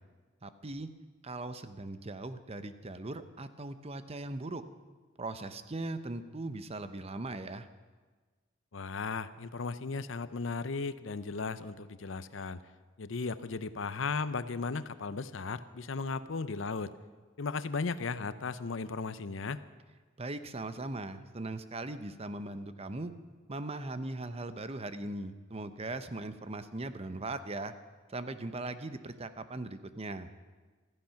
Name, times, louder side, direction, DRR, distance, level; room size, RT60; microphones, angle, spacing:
voice 1, 0.4-0.9 1.2-4.6 5.2-7.7 20.2-23.1 23.5-27.7 28.1-30.3, right 2 dB, 30° right, 11 dB, 0.8 m, -39 dB
voice 2, 8.7-12.6 13.0-16.9 17.4-19.6, left 4 dB, 70° left, 14 dB, 0.7 m, -36 dB
16.0 x 14.5 x 5.8 m, 1.4 s
head